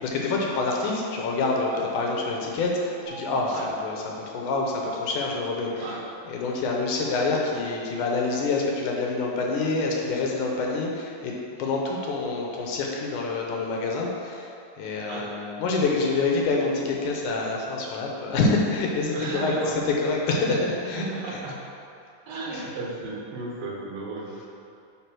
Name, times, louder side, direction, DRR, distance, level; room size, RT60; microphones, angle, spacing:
voice 1, 0.0-6.0 6.3-21.0 21.3-21.4 22.5-22.7, left 3 dB, 75° left, -1 dB, 2.2 m, -27 dB
sound 1, 3.0-5.3, left 2 dB, 50° right, 2.6 m, -45 dB
voice 2, 19.1-19.8 21.0-21.6 22.3-24.5, right 2 dB, 85° right, -3 dB, 3.2 m, -34 dB
9.4 x 3.9 x 6.1 m, 2.6 s
omnidirectional pair, 3.9 m